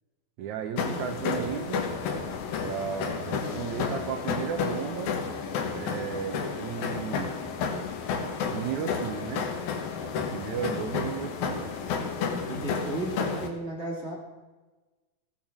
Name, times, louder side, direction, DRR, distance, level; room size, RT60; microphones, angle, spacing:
voice 1, 0.4-1.9 2.6-5.1 5.7-7.3 8.5-9.5 10.0-11.7, right 8 dB, 70° right, 7 dB, 2.0 m, -34 dB
sound 1, 0.8-13.5, left 5 dB, 75° left, 3.1 m, -31 dB
voice 2, 12.5-14.1, right 2 dB, 20° right, -2 dB, 2.7 m, -34 dB
17.0 x 7.4 x 6.1 m, 1.2 s
omnidirectional pair, 4.2 m